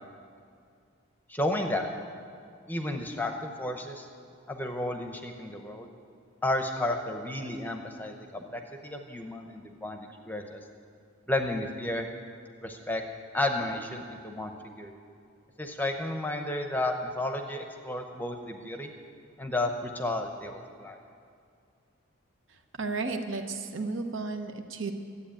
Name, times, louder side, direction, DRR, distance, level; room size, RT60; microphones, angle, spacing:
voice 1, 1.3-1.9 2.7-4.1 4.5-5.9 6.4-10.6 11.3-12.1 12.6-13.0 13.3-14.9 15.6-18.9 19.4-21.0, left 1 dB, 10° left, 5 dB, 0.8 m, -32 dB
voice 2, 22.5-24.9, right 3 dB, 65° right, 6 dB, 1.0 m, -33 dB
13.0 x 8.5 x 8.6 m, 2.3 s
head